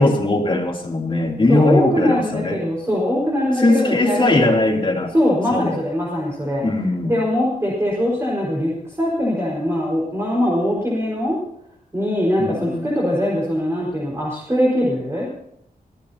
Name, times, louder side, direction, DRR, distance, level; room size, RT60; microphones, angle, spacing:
voice 1, 0.0-2.6 3.6-5.1 5.5-5.8 6.6-7.1 12.4-12.9, left 2 dB, 35° left, 0 dB, 3.1 m, -19 dB
voice 2, 1.5-4.4 5.1-6.6 7.1-11.4 11.9-15.3, left 1 dB, 20° right, -5 dB, 5.0 m, -21 dB
25.0 x 15.0 x 2.9 m, 0.72 s
wide cardioid pair, 100°, 15 cm